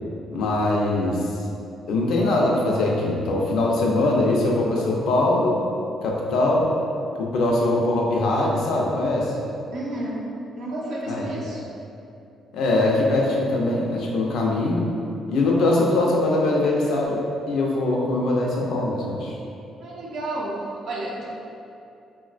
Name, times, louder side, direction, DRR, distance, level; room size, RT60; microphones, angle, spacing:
voice 1, 0.3-1.2 1.9-5.6 6.0-6.6 7.2-9.3 11.1-11.3 12.5-14.8 15.3-17.2 17.5-19.4, left 2 dB, 80° left, -2 dB, 0.4 m, -22 dB
voice 2, 9.7-10.3 10.5-11.6 19.8-21.2, right 1 dB, 85° right, -6 dB, 0.6 m, -31 dB
3.6 x 2.1 x 2.4 m, 2.7 s
cardioid pair, 90°, 0 cm